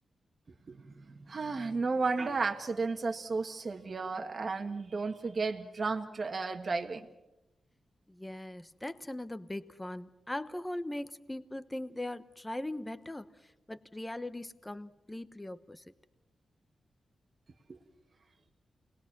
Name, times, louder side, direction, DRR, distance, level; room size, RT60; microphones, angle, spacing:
voice 1, 1.1-7.1, right 4 dB, 40° right, 4 dB, 1.6 m, -33 dB
voice 2, 8.1-15.9, left 1 dB, 10° left, 12 dB, 1.0 m, -40 dB
30.0 x 20.5 x 6.1 m, 0.98 s
wide cardioid pair, 155°, 0 cm